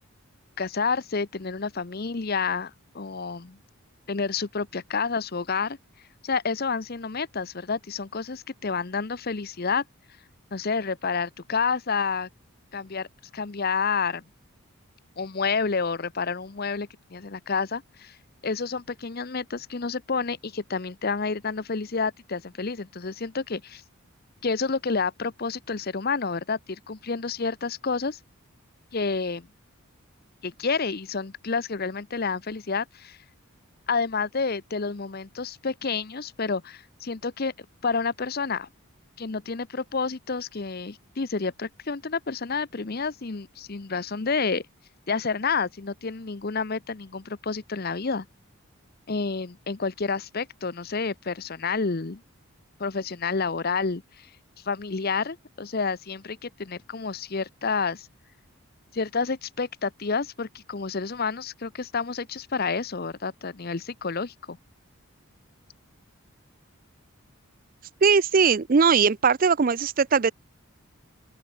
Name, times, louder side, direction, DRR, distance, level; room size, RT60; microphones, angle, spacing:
voice 1, 0.6-3.6 4.1-5.8 6.2-9.8 10.5-12.3 12.7-13.1 13.3-14.2 15.2-18.2 18.4-23.8 24.4-28.2 28.9-29.5 30.4-33.2 33.9-37.5 37.8-38.7 39.2-44.7 45.1-48.3 49.1-52.2 52.8-54.3 54.7-58.1 58.9-64.6, left 4 dB, 45° left, 0.8 m, -29 dB
voice 2, 68.0-70.3, right 5 dB, 40° right, 0.4 m, -20 dB
open air
head